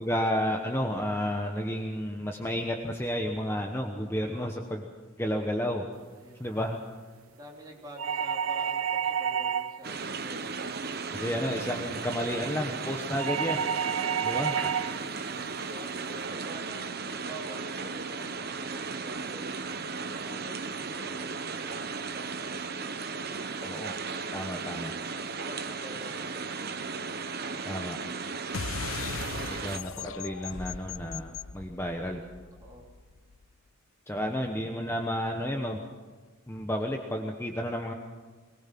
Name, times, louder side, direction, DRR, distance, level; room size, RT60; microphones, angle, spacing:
voice 1, 0.0-4.9 5.2-5.8 6.4-6.8 11.1-13.6 14.2-14.5 23.6-24.0 24.3-24.9 27.7-28.0 29.6-32.2 34.1-35.8 36.5-37.9, equal, 10° left, 2 dB, 1.1 m, -31 dB
voice 2, 4.3-4.7 6.2-6.7 7.3-10.8 14.2-14.8 15.7-19.5 19.9-22.6 23.0-23.6 25.1-26.5 32.6-32.9, right 1 dB, 20° right, -2 dB, 3.6 m, -48 dB
sound 1, 8.0-9.9 13.2-15.0, right 7 dB, 90° right, 0.5 m, -29 dB
sound 2, 9.8-29.8, right 4 dB, 50° right, 1.0 m, -36 dB
sound 3, 28.5-33.4, left 5 dB, 80° left, 0.7 m, -38 dB
22.5 x 20.0 x 6.0 m, 1.4 s
head